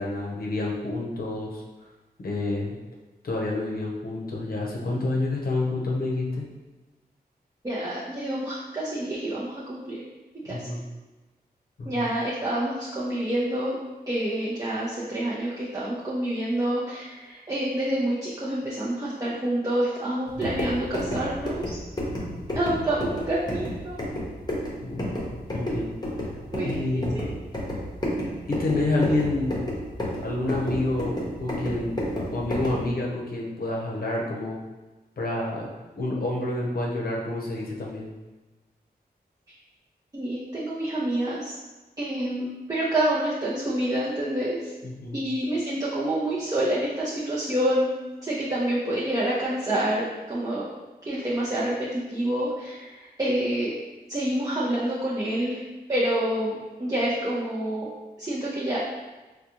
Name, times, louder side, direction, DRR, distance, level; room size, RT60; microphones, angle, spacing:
voice 1, 0.0-1.6 2.2-2.8 3.2-6.5 10.5-10.8 11.8-12.1 22.5-22.6 24.8-25.1 25.5-26.0 26.6-27.2 28.5-29.6 30.2-32.0 32.3-34.6 35.2-35.7 35.9-38.1 44.8-45.2, left 2 dB, 65° left, -2 dB, 0.7 m, -28 dB
voice 2, 7.6-10.0 10.4-10.7 11.9-13.8 14.1-21.8 22.5-24.0 26.5-27.3 40.1-41.6 42.0-44.7 45.1-47.9 48.2-50.6 51.1-51.7 52.1-53.8 54.1-55.6 55.9-57.9 58.2-58.8, right 1 dB, 20° right, -8 dB, 0.5 m, -27 dB
sound 1, 20.3-32.9, left 1 dB, 25° left, 0.8 m, -32 dB
3.8 x 2.2 x 2.9 m, 1.2 s
wide cardioid pair, 105°, 16 cm